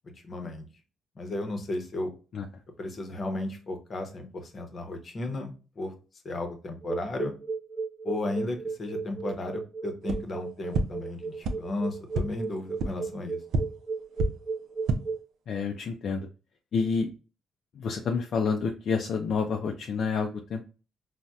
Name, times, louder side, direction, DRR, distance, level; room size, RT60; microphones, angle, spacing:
voice 1, 0.3-0.7 1.2-2.1 2.8-5.9 6.2-7.3 8.0-13.4, left 2 dB, 45° left, 5 dB, 0.7 m, -34 dB
sound 1, 6.8-15.2, right 4 dB, 35° right, 1.0 m, -34 dB
sound 2, 10.0-10.2 10.7-10.8 11.4-11.5 12.1-12.2 12.8-12.9 13.5-13.6 14.1-14.3 14.7-15.0, right 3 dB, 75° right, 0.4 m, -26 dB
voice 2, 15.5-16.3 16.7-17.1 17.8-20.7, left 5 dB, 65° left, 3 dB, 0.3 m, -29 dB
4.0 x 2.1 x 2.3 m, 0.34 s
cardioid pair, 90°, 0 cm